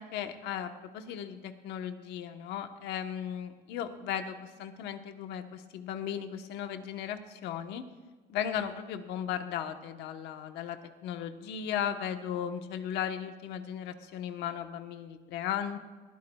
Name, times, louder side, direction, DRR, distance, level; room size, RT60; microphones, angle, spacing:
voice 1, 0.0-7.8 8.3-15.8, left 9 dB, 90° left, 7 dB, 1.1 m, -36 dB
20.5 x 16.0 x 2.3 m, 1.4 s
cardioid pair, 110°, 17 cm